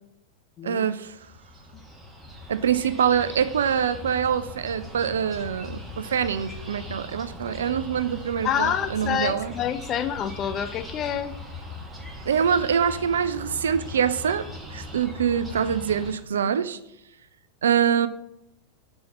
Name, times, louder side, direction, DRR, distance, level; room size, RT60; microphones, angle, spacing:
voice 1, 0.6-1.1 2.5-9.5 12.3-14.5 14.7-16.8 17.6-18.1, right 8 dB, 65° right, 13 dB, 0.4 m, -24 dB
sound 1, 1.0-16.1, left 1 dB, 15° right, 1.3 m, -40 dB
voice 2, 8.4-11.3, left 9 dB, 30° left, 11 dB, 0.5 m, -27 dB
4.7 x 4.2 x 5.6 m, 0.82 s
figure-of-eight pair, 90°, 0 cm